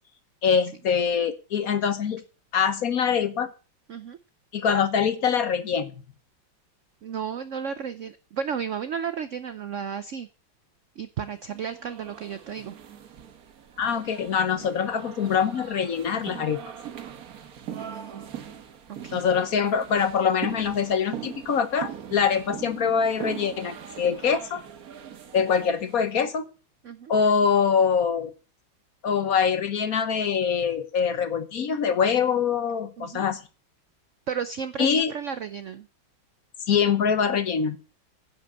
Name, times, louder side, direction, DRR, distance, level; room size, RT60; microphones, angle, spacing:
voice 1, 0.4-2.2 2.5-3.5 4.5-5.9 13.8-16.6 19.1-24.6 25.3-26.5 27.1-28.3 29.0-33.4 34.8-35.1 36.7-37.8, left 6 dB, 55° left, 11 dB, 1.2 m, -24 dB
voice 2, 7.0-10.3 11.0-12.7 17.7-18.3 18.9-19.2 26.8-27.1 33.0-33.2 34.3-35.9, right 7 dB, 75° right, 12 dB, 0.7 m, -33 dB
sound 1, 11.4-26.2, right 9 dB, 55° right, 1.4 m, -41 dB
10.5 x 6.0 x 7.7 m, 0.35 s
omnidirectional pair, 2.1 m